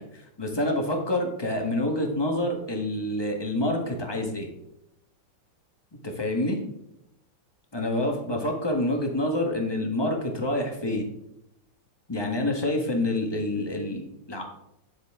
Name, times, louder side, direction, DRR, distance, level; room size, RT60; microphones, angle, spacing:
voice 1, 0.0-4.5 6.0-6.6 7.7-11.1 12.1-14.4, left 1 dB, 15° left, 2 dB, 1.1 m, -27 dB
9.7 x 7.3 x 3.6 m, 0.81 s
omnidirectional pair, 2.1 m